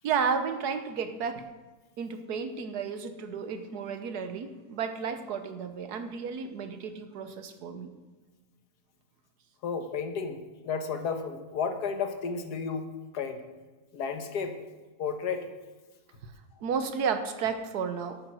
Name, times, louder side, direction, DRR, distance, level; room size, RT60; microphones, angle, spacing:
voice 1, 0.0-1.5 2.0-7.9 16.2-16.3 16.6-18.2, right 6 dB, 75° right, 9 dB, 1.5 m, -32 dB
voice 2, 9.6-12.8 13.1-13.4 13.9-14.5 15.0-15.5, left 5 dB, 80° left, 6 dB, 1.7 m, -32 dB
11.5 x 8.9 x 6.3 m, 1.2 s
omnidirectional pair, 1.7 m